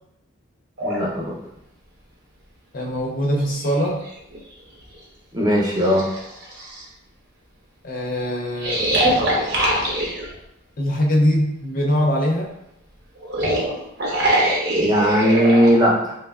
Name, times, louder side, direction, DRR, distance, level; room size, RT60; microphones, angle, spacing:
voice 1, 0.8-1.4 5.3-6.1 14.8-16.1, equal, 20° right, -4 dB, 0.6 m, -18 dB
sound 1, 0.8-1.0 2.8-2.9 3.3-4.4 4.9-5.0 5.7-6.8 8.6-10.3 13.2-15.7, right 1 dB, 55° right, 0.7 m, -23 dB
voice 2, 2.7-4.0 7.8-9.2 10.8-12.5, equal, 40° left, -1 dB, 0.5 m, -22 dB
3.4 x 3.0 x 2.3 m, 0.82 s
head